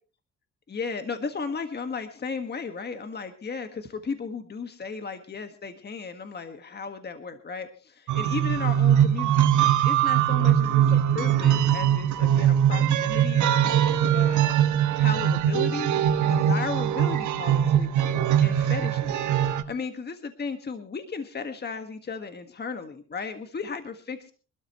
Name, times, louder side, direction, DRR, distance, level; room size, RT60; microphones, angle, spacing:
voice 1, 0.7-14.7 15.0-17.9 18.4-19.3 19.7-24.3, left 5 dB, 35° left, 7 dB, 1.6 m, -35 dB
sound 1, 8.1-19.6, right 10 dB, 75° right, 1.4 m, -22 dB
24.5 x 12.5 x 3.0 m, 0.37 s
cardioid pair, 90°, 30 cm